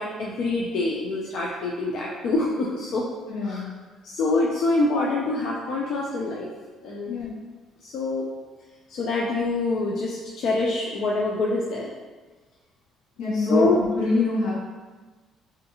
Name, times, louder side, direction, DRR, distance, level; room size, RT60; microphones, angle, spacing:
voice 1, 0.0-3.1 3.4-3.7 4.0-6.5 6.8-7.2 7.8-8.3 8.9-11.9 13.3-13.8, left 2 dB, 65° left, -3 dB, 0.3 m, -25 dB
voice 2, 3.3-3.7 7.0-7.3 13.2-14.6, left 2 dB, 90° left, -6 dB, 1.0 m, -25 dB
2.6 x 2.4 x 2.7 m, 1.3 s
cardioid pair, 120°, 0 cm